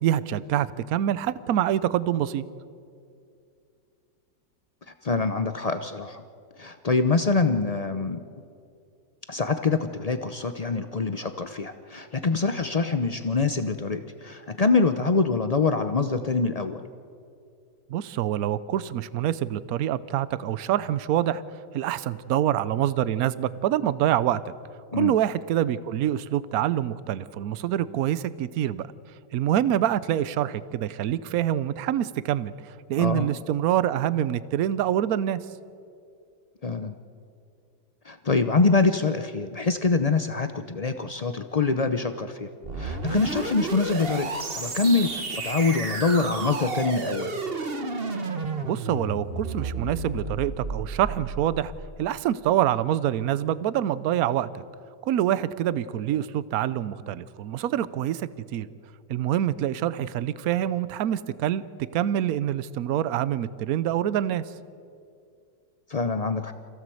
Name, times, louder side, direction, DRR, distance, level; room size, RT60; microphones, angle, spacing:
voice 1, 0.0-2.5 17.9-21.4 21.7-24.5 25.0-28.9 29.3-35.4 48.6-51.7 52.0-54.6 55.0-58.7 59.1-61.6 61.9-64.4, right 11 dB, 65° right, 17 dB, 1.1 m, -26 dB
voice 2, 5.0-6.2 6.6-8.2 9.3-16.8 24.9-25.2 33.0-33.3 36.6-36.9 38.0-42.5 42.8-47.3 65.9-66.5, left 4 dB, 75° left, 9 dB, 0.3 m, -25 dB
sound 1, 42.6-51.8, right 3 dB, 35° right, 1.5 m, -32 dB
27.0 x 16.0 x 7.8 m, 2.4 s
omnidirectional pair, 1.9 m